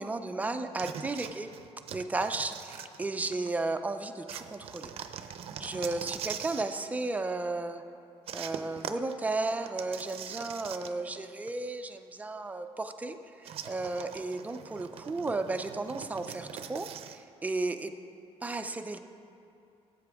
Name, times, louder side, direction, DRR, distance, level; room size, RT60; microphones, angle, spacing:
voice 1, 0.0-1.5 1.9-4.9 5.6-7.8 8.3-17.9 18.4-19.0, right 3 dB, 15° right, 7 dB, 0.5 m, -34 dB
sound 1, 0.8-3.5 4.3-6.8 8.3-11.2 11.5-11.6 13.4-17.2, right 8 dB, 65° right, 0.5 m, -42 dB
18.5 x 8.3 x 3.6 m, 2.6 s
cardioid pair, 160°, 10 cm